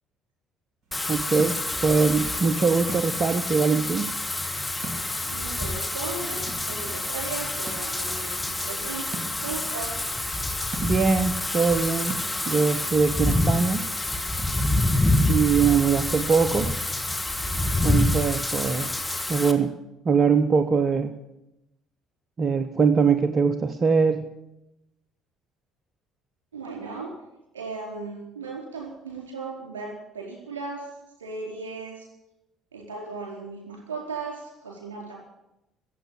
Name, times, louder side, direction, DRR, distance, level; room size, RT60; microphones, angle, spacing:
sound 1, 0.8-16.0, right 2 dB, 60° right, 1.7 m, -44 dB
Wind / Rain, 0.9-19.5, left 2 dB, 15° left, 1.6 m, -27 dB
voice 1, 1.1-4.1 10.8-12.2 12.5-13.9 15.3-16.7 17.8-18.9 19.3-19.7 20.0-21.1 22.4-24.2, right 5 dB, 40° right, 8 dB, 0.8 m, -22 dB
voice 2, 5.3-9.0 9.4-10.1 26.5-27.1 27.5-30.9 31.2-32.1 32.7-35.2, right 4 dB, 75° right, -1 dB, 4.3 m, -36 dB
14.5 x 8.0 x 8.6 m, 0.90 s
figure-of-eight pair, 55°, 0 cm